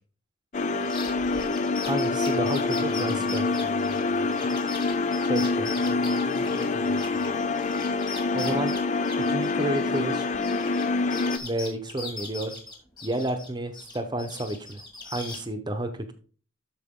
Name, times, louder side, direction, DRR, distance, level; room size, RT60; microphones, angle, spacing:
sound 1, 0.5-11.4, left 3 dB, 35° left, 0.4 m, -26 dB
sound 2, 0.8-7.3 7.6-10.8 11.1-13.5 13.7-15.4, left 3 dB, 20° left, 2.0 m, -40 dB
voice 1, 1.9-3.4 5.3-5.7 8.3-8.7 9.2-10.3 11.4-12.6 13.0-14.8 15.1-16.1, right 1 dB, 20° right, 7 dB, 0.9 m, -30 dB
voice 2, 2.8-4.5 5.7-7.3, left 1 dB, 80° left, 0 dB, 3.1 m, -41 dB
13.0 x 4.8 x 3.7 m, 0.39 s
head